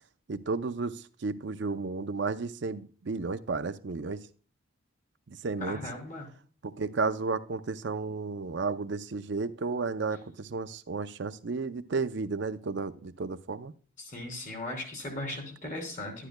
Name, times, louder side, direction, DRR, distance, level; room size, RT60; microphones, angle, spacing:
voice 1, 0.3-4.2 5.3-5.8 6.6-13.7, right 4 dB, 55° right, 13 dB, 0.5 m, -33 dB
voice 2, 5.6-6.3 14.0-16.3, left 2 dB, 40° left, 2 dB, 3.1 m, -38 dB
11.5 x 10.0 x 2.2 m, 0.43 s
head